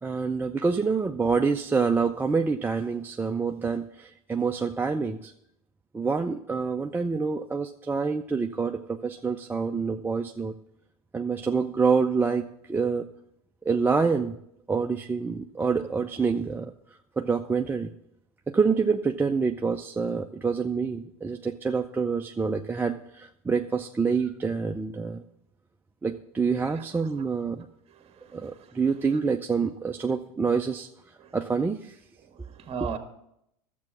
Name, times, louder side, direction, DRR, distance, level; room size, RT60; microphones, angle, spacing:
voice 1, 0.0-5.3 5.9-10.5 11.1-13.1 13.7-14.4 14.7-16.7 17.2-17.9 18.5-25.2 26.0-27.7 28.3-30.9 31.3-31.9, right 5 dB, 10° right, 0.5 m, -27 dB
voice 2, 26.6-27.2 27.9-28.8 29.1-29.2 31.2-31.4 32.2-33.0, right 7 dB, 35° right, 1.7 m, -40 dB
11.5 x 7.6 x 6.0 m
hypercardioid pair, 100°, 19 cm